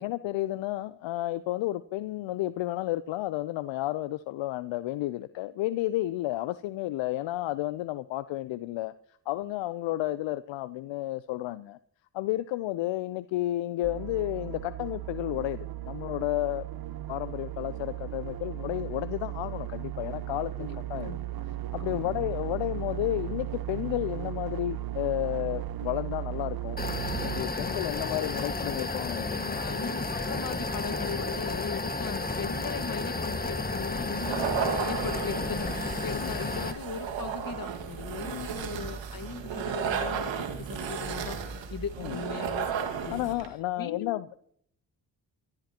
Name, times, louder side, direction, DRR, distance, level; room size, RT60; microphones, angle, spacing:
voice 1, 0.0-8.9 9.3-11.8 12.1-16.6 17.1-21.1 21.7-26.8 27.2-29.6 36.1-36.3 38.2-38.5 42.0-42.2 43.1-44.4, left 16 dB, 70° left, 0.6 m, -32 dB
sound 1, 13.8-27.4, right 14 dB, 50° right, 0.8 m, -36 dB
voice 2, 21.8-22.1 28.3-28.5 29.5-41.4 41.7-43.2 43.8-44.1, left 6 dB, 45° left, 1.7 m, -38 dB
sound 2, 26.8-36.7, left 2 dB, 20° left, 1.7 m, -32 dB
sound 3, 34.1-43.5, right 6 dB, 70° right, 2.0 m, -34 dB
26.0 x 13.0 x 2.9 m
hypercardioid pair, 45°, 47 cm